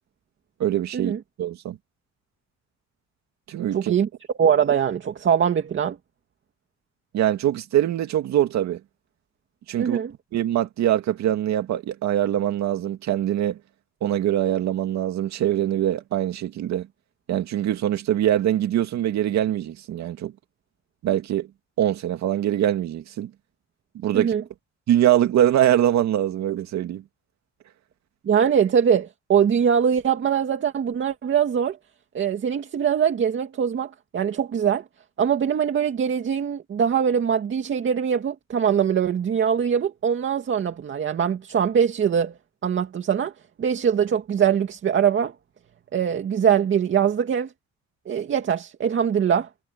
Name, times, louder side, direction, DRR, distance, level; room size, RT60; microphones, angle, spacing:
voice 1, 0.6-1.1 1.4-1.8 3.5-3.9 7.1-8.8 9.7-10.0 10.3-13.6 14.0-16.9 17.3-20.3 21.0-21.5 21.8-23.3 23.9-24.3 24.9-27.0, right 12 dB, 70° right, 2.3 m, -23 dB
voice 2, 3.7-4.1 4.4-6.0 9.8-10.1 24.1-24.4 28.2-31.8 32.1-34.8 35.2-42.3 42.6-43.3 43.6-45.3 45.9-47.5 48.1-49.5, right 8 dB, 40° right, 2.3 m, -22 dB
cardioid pair, 160°, 29 cm